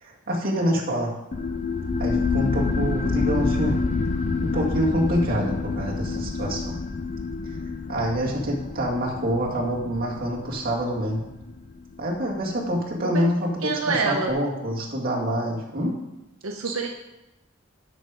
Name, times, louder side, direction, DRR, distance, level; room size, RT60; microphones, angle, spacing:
voice 1, 0.0-1.1 2.0-3.7 4.4-6.8 7.9-11.3 12.0-16.0 16.6-16.8, equal, 45° right, -3 dB, 2.1 m, -26 dB
sound 1, 1.3-12.4, left 4 dB, 35° left, 0.5 m, -28 dB
voice 2, 13.6-14.3 16.4-16.9, right 4 dB, 85° right, 2 dB, 0.8 m, -26 dB
12.5 x 5.0 x 5.0 m, 0.96 s
head